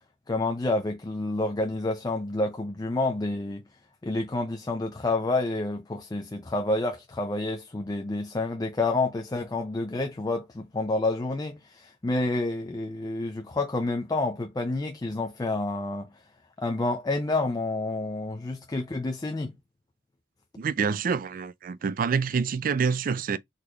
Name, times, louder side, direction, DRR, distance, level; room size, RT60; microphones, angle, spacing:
voice 1, 0.3-3.6 4.0-16.1 16.6-19.5, left 2 dB, 20° left, 0.4 m, -29 dB
voice 2, 20.6-23.4, right 5 dB, 50° right, 0.4 m, -27 dB
4.0 x 3.0 x 3.3 m
head